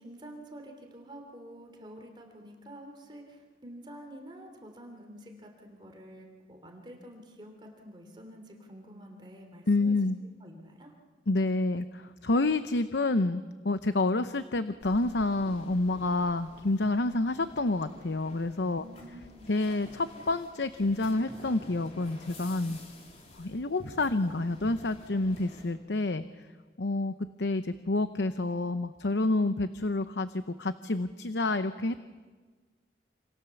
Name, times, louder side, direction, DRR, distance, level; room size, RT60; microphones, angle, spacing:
voice 1, 0.0-9.9 10.4-10.9 18.8-19.6, equal, 25° right, 2 dB, 3.2 m, -48 dB
voice 2, 9.7-10.2 11.3-18.8 19.5-22.8 23.4-26.5 26.8-27.1 27.4-32.0, left 2 dB, 80° left, 11 dB, 0.8 m, -28 dB
sound 1, 14.8-25.7, left 1 dB, 35° left, 3.3 m, -51 dB
28.0 x 27.0 x 7.1 m, 1.4 s
head